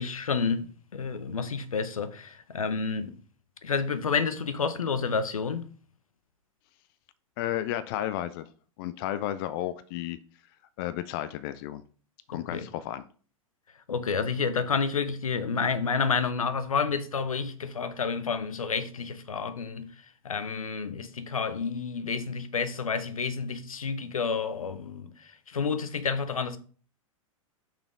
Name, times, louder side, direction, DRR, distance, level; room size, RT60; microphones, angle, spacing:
voice 1, 0.0-3.2 3.6-5.7 12.3-12.7 13.9-19.9 20.2-26.6, left 5 dB, 75° left, 0.7 m, -30 dB
voice 2, 7.4-8.5 8.8-10.2 10.8-11.8 12.3-13.0, left 12 dB, 40° left, 0.4 m, -32 dB
5.8 x 5.1 x 3.6 m
figure-of-eight pair, 95°, 18 cm